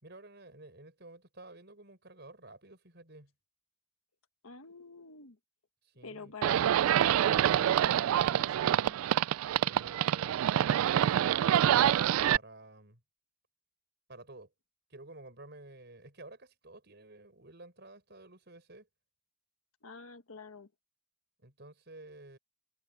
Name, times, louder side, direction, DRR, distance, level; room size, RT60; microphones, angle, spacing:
voice 1, 0.0-3.3 5.8-6.3 9.6-11.7 12.3-13.0 14.1-14.5 14.9-18.9 21.4-22.4, right 2 dB, 50° right, 5.8 m, -52 dB
voice 2, 4.4-5.4 6.0-7.0 7.6-9.0 19.8-20.7, left 4 dB, 85° left, 1.4 m, -48 dB
Livestock farm animals working animals, 6.4-12.4, right 10 dB, 85° right, 0.3 m, -26 dB
head